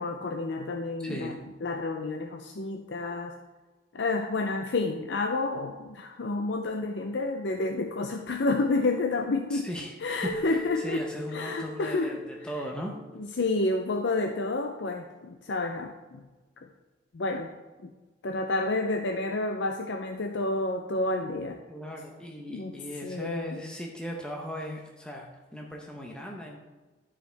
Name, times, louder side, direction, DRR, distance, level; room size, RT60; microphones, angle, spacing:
voice 1, 0.0-1.4 1.6-3.4 3.9-9.7 10.0-11.0 11.3-12.2 13.2-16.3 16.6-16.7 17.1-17.5 17.8-17.9 18.2-21.6 22.5-23.6, left 2 dB, 70° left, 4 dB, 0.5 m, -30 dB
voice 2, 1.0-1.3 9.5-13.0 21.7-26.6, equal, 5° left, -1 dB, 0.7 m, -38 dB
Keyboard (musical), 10.2-13.4, left 2 dB, 25° right, 1.3 m, -40 dB
12.5 x 4.8 x 3.4 m, 1.3 s
head